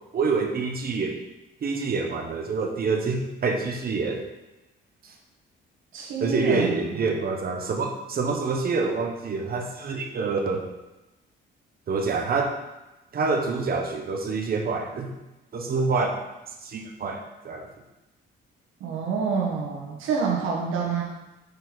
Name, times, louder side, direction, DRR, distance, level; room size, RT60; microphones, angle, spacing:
voice 1, 0.1-1.1 1.6-4.3 6.2-10.6 11.9-12.6 13.1-15.1 15.5-16.2 16.6-17.7, right 4 dB, 50° right, 2 dB, 1.1 m, -26 dB
voice 2, 5.9-6.7 18.8-21.0, right 5 dB, 85° right, -2 dB, 1.5 m, -27 dB
6.6 x 4.7 x 4.1 m, 1.0 s
cardioid pair, 90°, 20 cm